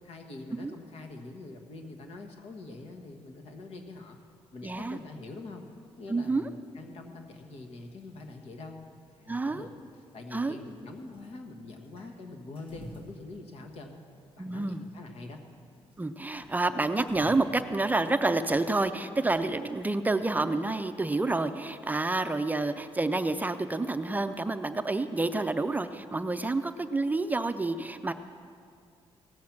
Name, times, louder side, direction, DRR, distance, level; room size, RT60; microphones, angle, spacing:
voice 1, 0.0-4.2 4.5-5.6 6.0-8.8 9.1-9.7 10.1-14.0 14.3-15.4, left 2 dB, 75° left, 4 dB, 1.3 m, -44 dB
sound 1, 4.6-17.6, equal, 55° left, 2.5 m, -54 dB
voice 2, 4.6-5.0 6.1-6.5 9.3-9.7 10.3-10.6 14.4-14.8 16.0-28.1, right 2 dB, 15° right, 9 dB, 0.4 m, -29 dB
17.0 x 7.6 x 5.8 m, 2.4 s
cardioid pair, 115°, 11 cm